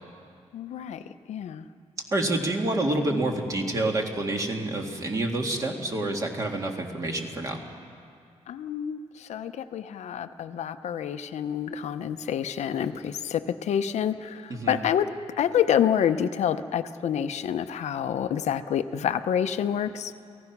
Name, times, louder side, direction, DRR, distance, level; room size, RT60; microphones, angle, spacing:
voice 1, 0.5-1.0 1.3-1.7 8.5-20.1, left 9 dB, 70° left, 9 dB, 0.7 m, -28 dB
voice 2, 2.1-7.6 14.5-14.8, right 2 dB, 30° right, 2 dB, 2.0 m, -28 dB
29.5 x 18.0 x 6.0 m, 2.3 s
wide cardioid pair, 175°, 12 cm